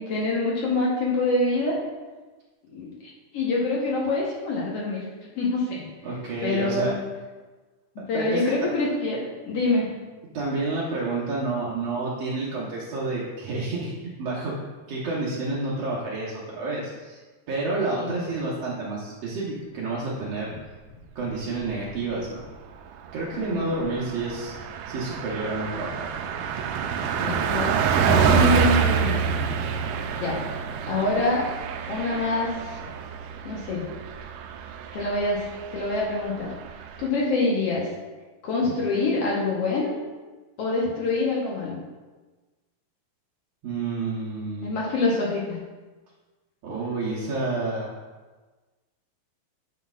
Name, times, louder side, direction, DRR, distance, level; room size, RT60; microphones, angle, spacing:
voice 1, 0.0-1.8 2.7-5.0 5.3-5.8 6.4-7.0 7.9-9.9 18.0-18.1 23.3-23.7 27.2-29.4 30.2-30.4 30.9-31.5 31.9-32.8 33.4-33.8 34.9-35.4 35.7-36.5 37.0-37.9 38.4-39.9 40.6-41.8 44.6-45.6, left 2 dB, 65° left, -4 dB, 1.6 m, -25 dB
voice 2, 6.0-6.9 8.1-8.4 10.3-14.6 14.9-17.2 17.5-20.5 21.1-22.4 23.1-24.5 24.9-26.1 43.6-44.8 46.6-47.9, right 3 dB, 65° right, -7 dB, 1.7 m, -29 dB
Car passing by, 21.4-22.0 22.4-22.5 22.8-37.1, right 7 dB, 85° right, 2.3 m, -27 dB
8.4 x 8.0 x 2.4 m, 1.3 s
omnidirectional pair, 4.1 m